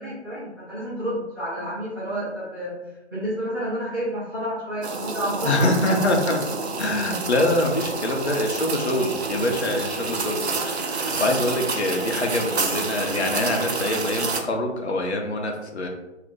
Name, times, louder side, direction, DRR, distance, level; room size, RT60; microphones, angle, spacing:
voice 1, 0.0-2.7 3.1-5.7, equal, 20° right, -13 dB, 0.6 m, -30 dB
sound 1, 4.8-14.4, right 4 dB, 65° right, 0.5 m, -28 dB
voice 2, 5.4-6.4 6.8-15.9, left 1 dB, 65° left, 2 dB, 0.7 m, -24 dB
2.5 x 2.0 x 3.8 m, 1.0 s
figure-of-eight pair, 150°, 35 cm